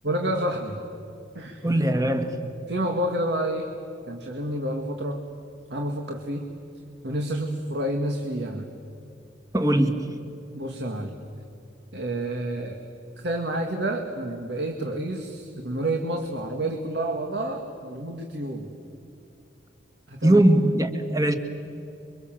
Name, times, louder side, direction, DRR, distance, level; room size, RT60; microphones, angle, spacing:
voice 1, 0.0-0.8 1.4-1.7 2.7-3.7 4.1-5.2 5.7-6.5 7.0-8.7 10.5-11.2 11.9-12.8 13.2-18.7 20.1-20.4, right 1 dB, 65° right, 2.0 m, -29 dB
voice 2, 1.6-2.5 9.5-10.1 20.2-21.4, right 1 dB, 20° right, 1.9 m, -21 dB
28.5 x 24.0 x 7.6 m
head